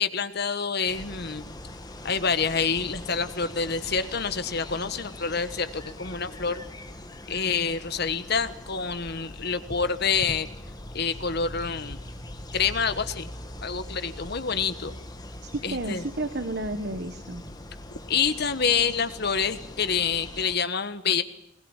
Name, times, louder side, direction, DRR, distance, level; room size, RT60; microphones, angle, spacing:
voice 1, 0.0-1.5 2.0-6.6 7.3-10.5 10.9-12.0 12.5-13.3 13.6-14.9 15.6-16.0 18.1-21.2, left 6 dB, 55° left, 12 dB, 1.4 m, -27 dB
sound 1, 0.8-20.6, left 1 dB, 20° left, 1.6 m, -41 dB
voice 2, 15.4-17.4, right 2 dB, 55° right, 9 dB, 1.4 m, -32 dB
21.0 x 20.0 x 9.0 m, 0.82 s
head